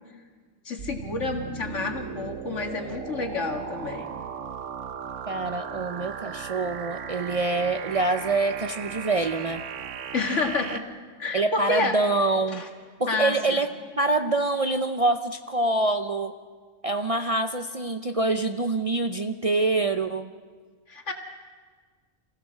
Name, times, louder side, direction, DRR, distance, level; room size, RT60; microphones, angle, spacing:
voice 1, 0.6-4.1 10.1-10.8 11.2-12.0 12.5-12.7 13.1-13.6 20.9-21.1, left 3 dB, 75° left, 3 dB, 2.3 m, -29 dB
sound 1, 0.8-10.8, right 7 dB, 80° right, 1.2 m, -37 dB
voice 2, 5.3-9.6 11.3-12.6 13.0-13.7 14.0-16.3 16.8-20.3, right 2 dB, 40° right, 7 dB, 0.6 m, -25 dB
27.0 x 16.0 x 6.5 m, 1.5 s
omnidirectional pair, 1.3 m